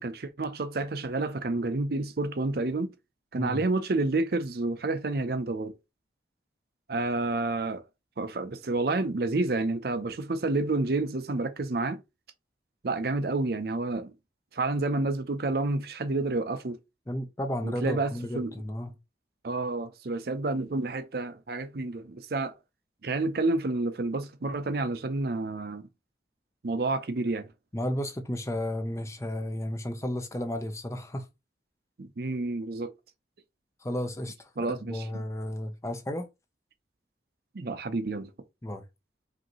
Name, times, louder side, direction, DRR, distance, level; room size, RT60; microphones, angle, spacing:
voice 1, 0.0-2.9 3.3-5.7 6.9-7.8 8.2-12.0 12.8-14.1 14.5-16.8 17.6-18.5 19.4-22.5 23.0-25.9 26.6-27.5 32.0-32.9 34.6-35.2 37.5-38.3, right 2 dB, 55° right, 0.6 m, -29 dB
voice 2, 17.1-18.9 27.7-31.3 33.8-36.3 38.6-38.8, left 1 dB, 15° left, 0.6 m, -33 dB
5.0 x 2.7 x 3.0 m
head